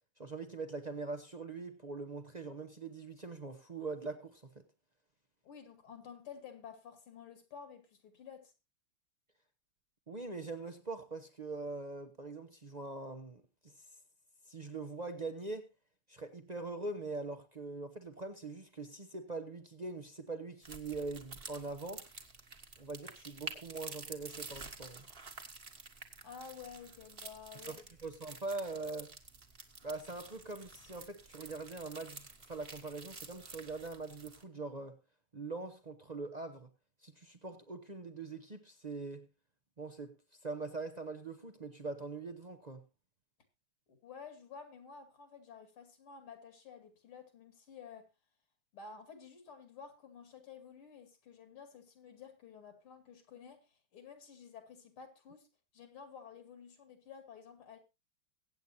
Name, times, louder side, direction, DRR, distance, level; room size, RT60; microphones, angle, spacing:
voice 1, 0.2-4.6 10.1-13.8 14.5-15.7 16.1-22.1 22.8-25.1 27.7-29.2 29.8-35.0 35.3-36.7 37.0-39.3 39.8-40.2 40.4-42.8, right 3 dB, 50° right, 0.4 m, -43 dB
voice 2, 5.4-8.5 26.2-27.8 43.9-48.1 48.7-55.5 55.7-57.8, left 6 dB, 75° left, 3.2 m, -52 dB
sound 1, 20.6-34.4, right 4 dB, 30° right, 1.4 m, -50 dB
23.0 x 8.6 x 2.7 m
omnidirectional pair, 2.4 m